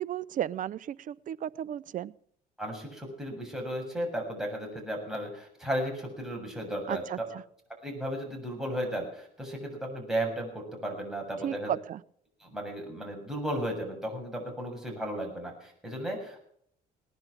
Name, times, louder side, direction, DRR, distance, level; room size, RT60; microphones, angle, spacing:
voice 1, 0.0-2.1 6.9-7.4 11.4-12.0, right 10 dB, 50° right, 19 dB, 0.7 m, -34 dB
voice 2, 2.6-7.0 7.8-11.7 12.4-16.4, equal, 5° right, 0 dB, 7.4 m, -35 dB
19.0 x 11.5 x 6.2 m, 0.65 s
cardioid pair, 110°, 17 cm